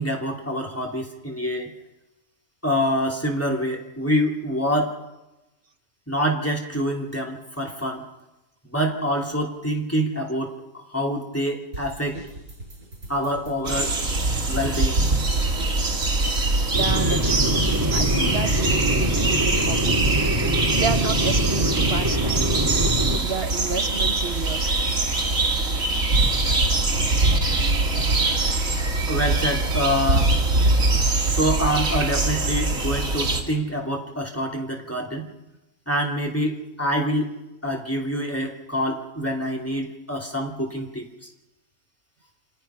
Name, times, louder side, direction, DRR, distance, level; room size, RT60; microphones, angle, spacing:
voice 1, 0.0-1.7 2.6-4.9 6.1-8.0 8.7-12.2 13.1-13.9 14.5-15.0 29.1-30.3 31.3-35.3 35.9-37.3 37.6-41.3, equal, 10° left, -1 dB, 3.0 m, -26 dB
sound 1, 11.7-18.6, right 1 dB, 80° right, 6.9 m, -41 dB
sound 2, 13.6-33.4, right 2 dB, 65° right, 2.9 m, -23 dB
sound 3, 16.7-23.2, equal, 15° right, 2.6 m, -24 dB
voice 2, 16.7-22.4 23.2-24.8 26.1-26.5, right 5 dB, 45° right, 6 dB, 1.6 m, -31 dB
29.5 x 25.5 x 5.8 m, 1.0 s
omnidirectional pair, 1.5 m